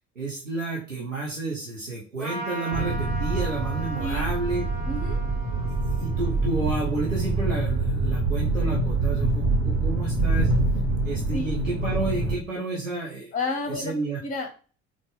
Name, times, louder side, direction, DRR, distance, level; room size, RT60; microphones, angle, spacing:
voice 1, 0.2-4.6 5.7-10.5 11.0-13.3 13.7-14.2, right 3 dB, 90° right, -5 dB, 0.7 m, -31 dB
Trumpet, 2.2-8.0, right 1 dB, 70° right, 1.8 m, -39 dB
sound 1, 2.7-12.4, right 3 dB, 35° right, 1.3 m, -25 dB
voice 2, 4.0-4.3 4.9-5.2 11.3-11.5 13.3-13.9 14.2-14.5, left 2 dB, 20° left, 4 dB, 0.8 m, -30 dB
3.6 x 2.4 x 3.3 m, 0.39 s
figure-of-eight pair, 50°, 38 cm